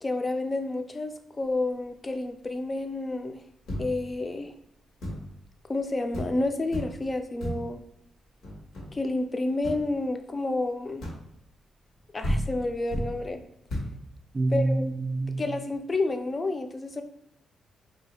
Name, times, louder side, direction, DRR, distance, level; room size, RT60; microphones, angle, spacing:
voice 1, 0.0-3.4 3.8-4.5 5.7-7.8 8.9-11.0 12.1-13.4 14.5-14.8 15.4-17.0, left 2 dB, 30° left, 6 dB, 0.5 m, -30 dB
sound 1, 3.7-4.2 5.0-5.4 5.8-5.9 6.1-6.4 6.7-7.1 7.4-7.8 8.4-9.1 9.6-9.9 11.0-11.4 12.0-12.1 12.2-13.2 13.7-14.0, equal, 80° left, 1.4 m, -33 dB
voice 2, 14.3-15.4, right 2 dB, 30° right, 8 dB, 0.3 m, -26 dB
3.0 x 2.8 x 4.2 m, 0.79 s
cardioid pair, 100°, 0 cm